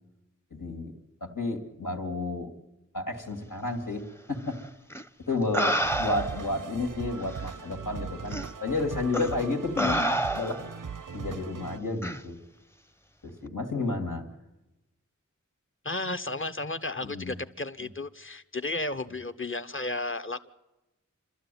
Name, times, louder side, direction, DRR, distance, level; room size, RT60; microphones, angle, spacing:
voice 1, 0.5-2.5 2.9-4.6 5.3-10.6 11.1-12.4 13.2-14.2 17.0-17.4, left 3 dB, 85° left, 3 dB, 2.5 m, -31 dB
sound 1, 4.9-5.0 5.5-6.5 7.4-7.5 8.3-8.5 9.1-9.3 9.8-10.7 12.0-12.2, right 1 dB, 10° left, 0.7 m, -28 dB
sound 2, 5.8-11.8, right 6 dB, 85° right, 0.7 m, -39 dB
voice 2, 15.8-20.5, left 2 dB, 40° left, 10 dB, 1.0 m, -33 dB
28.0 x 13.0 x 9.3 m, 1.0 s
wide cardioid pair, 45°, 31 cm